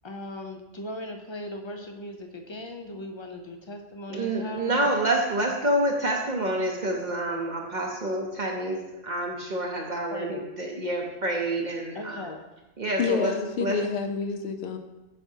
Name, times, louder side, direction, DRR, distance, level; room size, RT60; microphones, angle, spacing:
voice 1, 0.0-4.9 10.1-10.4 11.9-12.4, left 1 dB, 40° left, 4 dB, 0.4 m, -38 dB
voice 2, 4.1-8.8 9.0-12.3 12.8-13.3 13.6-13.8, right 1 dB, 45° right, 0 dB, 0.8 m, -27 dB
voice 3, 13.0-14.8, left 5 dB, 65° left, 7 dB, 0.9 m, -28 dB
8.4 x 5.8 x 2.7 m, 1.0 s
omnidirectional pair, 1.2 m